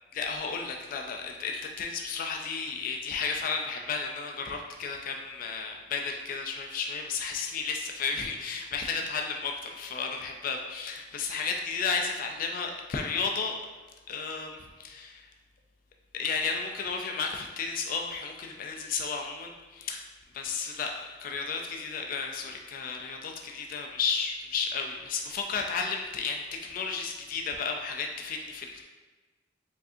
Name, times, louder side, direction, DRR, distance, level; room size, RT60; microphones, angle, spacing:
voice 1, 0.1-13.6 14.1-15.3 16.1-20.1 20.3-28.8, left 5 dB, 50° left, 2 dB, 0.3 m, -33 dB
4.7 x 2.6 x 2.5 m, 1.3 s
head